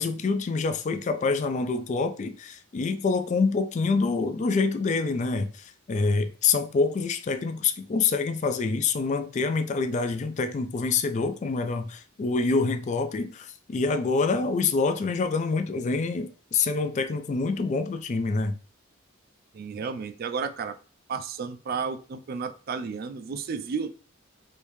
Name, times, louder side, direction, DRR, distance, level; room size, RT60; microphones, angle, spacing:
voice 1, 0.0-18.5, left 4 dB, 35° left, 0.3 m, -26 dB
voice 2, 19.5-20.8 21.1-23.9, right 5 dB, 50° right, 0.3 m, -32 dB
3.4 x 2.7 x 3.0 m
head